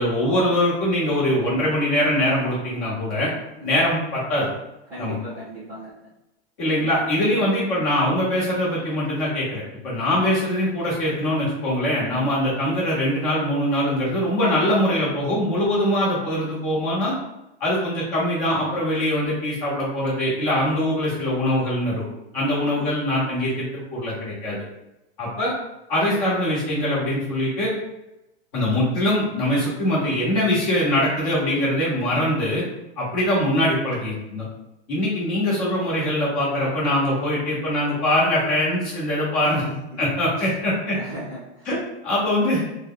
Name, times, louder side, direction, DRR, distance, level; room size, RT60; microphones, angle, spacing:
voice 1, 0.0-3.3 3.6-4.5 5.0-5.2 6.6-17.1 17.6-22.0 22.3-24.6 25.2-25.5 25.9-27.7 28.5-32.6 33.0-34.4 34.9-39.6 40.0-41.0 41.6-41.8 42.0-42.6, left 1 dB, 30° left, -6 dB, 1.3 m, -22 dB
voice 2, 4.9-5.9 22.4-22.9 39.4-40.0 40.4-40.5 40.9-41.7, right 1 dB, 5° right, -15 dB, 0.4 m, -36 dB
3.2 x 2.2 x 3.9 m, 0.91 s
supercardioid pair, 175°, 34 cm